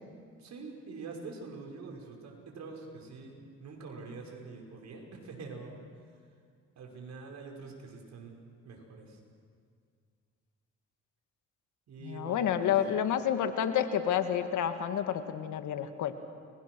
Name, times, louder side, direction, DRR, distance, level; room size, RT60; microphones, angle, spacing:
voice 1, 0.4-5.7 6.8-8.4 8.6-9.2 11.9-12.7, right 4 dB, 65° right, 1 dB, 5.3 m, -45 dB
voice 2, 12.0-16.1, left 9 dB, 80° left, 8 dB, 1.7 m, -29 dB
30.0 x 22.5 x 6.2 m, 2.1 s
cardioid pair, 90°, 30 cm